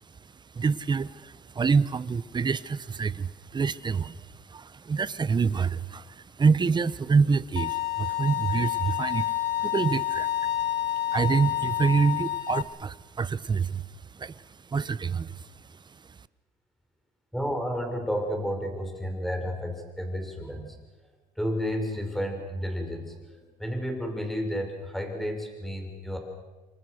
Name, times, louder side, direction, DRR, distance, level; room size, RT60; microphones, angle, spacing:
voice 1, 0.5-13.8 14.1-16.2, right 5 dB, 25° right, 17 dB, 1.0 m, -27 dB
Bowed string instrument, 7.6-12.6, left 13 dB, 85° left, 2.0 m, -29 dB
voice 2, 17.3-20.8 21.4-26.2, equal, ahead, 4 dB, 6.2 m, -31 dB
29.0 x 25.0 x 6.5 m, 1.2 s
cardioid pair, 110°, 17 cm